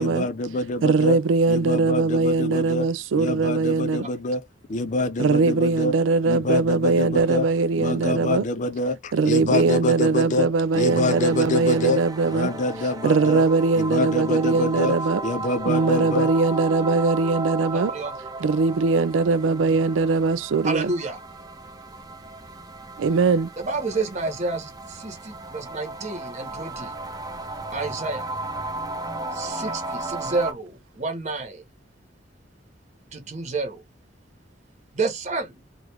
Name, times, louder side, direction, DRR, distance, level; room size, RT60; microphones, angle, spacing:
voice 1, 0.0-1.2 1.5-2.9 3.1-4.4 4.7-5.9 6.2-7.5 7.8-10.5 10.7-13.4 13.8-15.0 15.2-16.3, left 2 dB, 40° left, 0.4 m, -26 dB
voice 2, 0.8-4.1 5.2-8.4 9.1-12.5 13.0-15.2 15.7-17.9 18.4-20.9 23.0-23.5, right 4 dB, 85° right, 0.4 m, -21 dB
sound 1, 10.7-30.5, right 2 dB, 20° right, 0.6 m, -35 dB
voice 3, 17.7-18.1 20.6-21.2 23.6-27.0 27.7-28.3 29.3-31.6 33.1-33.8 34.9-35.6, right 3 dB, 40° right, 1.0 m, -29 dB
2.9 x 2.4 x 3.4 m
head